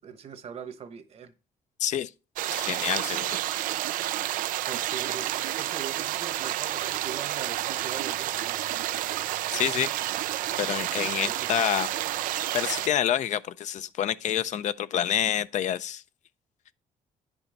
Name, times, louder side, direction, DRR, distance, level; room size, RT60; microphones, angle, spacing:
voice 1, 0.0-1.3 4.7-5.3 5.5-8.6 11.3-11.5, right 7 dB, 50° right, 1.1 m, -41 dB
voice 2, 1.8-2.1 2.5-3.4 9.5-9.9 10.6-11.9 12.5-16.0, left 10 dB, 60° left, 0.5 m, -27 dB
sound 1, 2.4-12.9, right 14 dB, 90° right, 0.4 m, -30 dB
9.8 x 5.4 x 5.3 m
cardioid pair, 120°, 14 cm